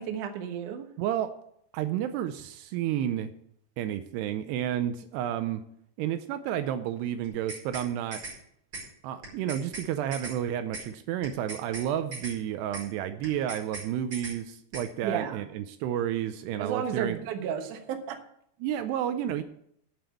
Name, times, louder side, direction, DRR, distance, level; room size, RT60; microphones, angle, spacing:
voice 1, 0.0-0.9 15.0-15.5 16.6-18.2, right 8 dB, 65° right, 5 dB, 2.1 m, -33 dB
voice 2, 1.0-1.3 1.7-3.3 3.8-5.6 6.0-8.2 9.0-17.2 18.6-19.4, right 10 dB, 80° right, 10 dB, 2.6 m, -31 dB
sound 1, 7.2-7.9 8.1-8.4 8.7-8.9 9.2-9.9 10.1-10.4 10.7-10.9 11.2-11.9 12.1-12.4 12.7-12.9 13.2-13.9 14.1-14.4 14.7-14.9, right 2 dB, 25° right, 5.1 m, -39 dB
9.3 x 7.0 x 8.2 m, 0.70 s
omnidirectional pair, 4.9 m